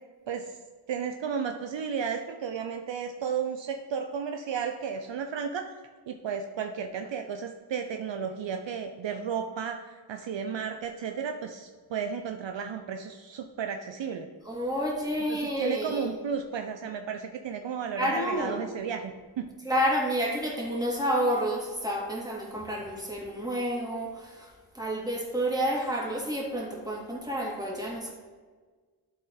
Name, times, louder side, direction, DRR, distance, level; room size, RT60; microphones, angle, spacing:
voice 1, 0.9-5.7 6.1-14.3 15.3-19.1 19.4-19.5, right 6 dB, 65° right, 5 dB, 0.6 m, -33 dB
voice 2, 14.4-16.1 18.0-18.6 19.6-24.5 24.7-28.1, equal, 10° right, -3 dB, 2.6 m, -29 dB
11.5 x 4.2 x 3.9 m, 1.4 s
cardioid pair, 40°, 48 cm